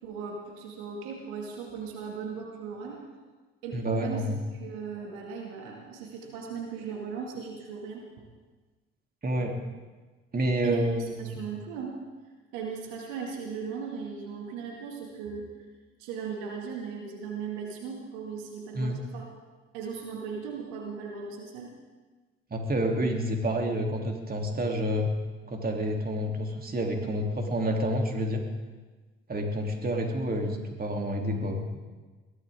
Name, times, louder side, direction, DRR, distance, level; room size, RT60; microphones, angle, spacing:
voice 1, 0.0-3.0 3.6-4.2 4.5-8.2 10.6-12.0 12.5-15.5 16.0-19.3 19.7-21.7, right 6 dB, 75° right, 0 dB, 2.4 m, -37 dB
voice 2, 3.7-4.4 9.2-9.6 10.3-11.4 18.7-19.0 22.5-25.1 25.5-28.4 29.3-31.8, equal, 30° right, 1 dB, 3.3 m, -29 dB
22.0 x 16.0 x 3.8 m, 1.3 s
hypercardioid pair, 55°, 30 cm